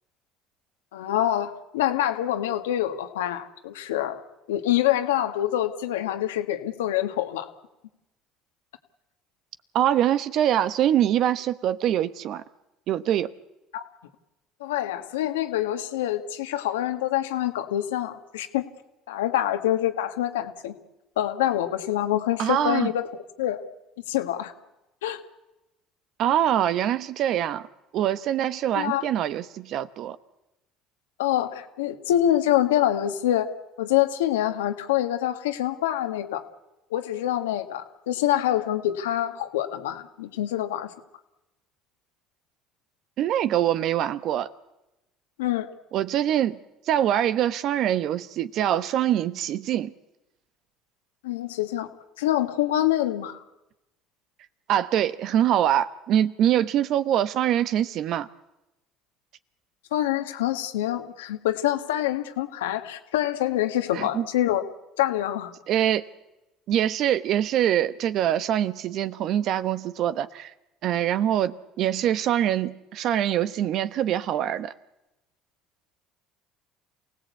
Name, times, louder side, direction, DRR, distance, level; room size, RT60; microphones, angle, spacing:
voice 1, 0.9-4.2 4.5-7.5 13.7-13.8 14.6-18.6 19.1-20.7 21.2-23.1 23.4-23.6 24.1-24.5 25.0-25.2 28.7-29.1 31.2-33.5 33.8-36.4 36.9-40.9 45.4-45.7 51.2-51.9 52.2-53.4 59.9-64.6 65.0-65.5, left 12 dB, 90° left, 1.6 m, -26 dB
voice 2, 9.7-12.4 12.9-13.3 22.4-22.9 26.2-27.7 27.9-30.2 43.2-44.5 45.9-46.6 46.9-49.9 54.7-58.3 63.9-64.3 65.7-66.0 66.7-70.5 70.8-74.7, right 11 dB, 60° right, 1.0 m, -24 dB
27.5 x 17.5 x 8.4 m
hypercardioid pair, 75°, 0 cm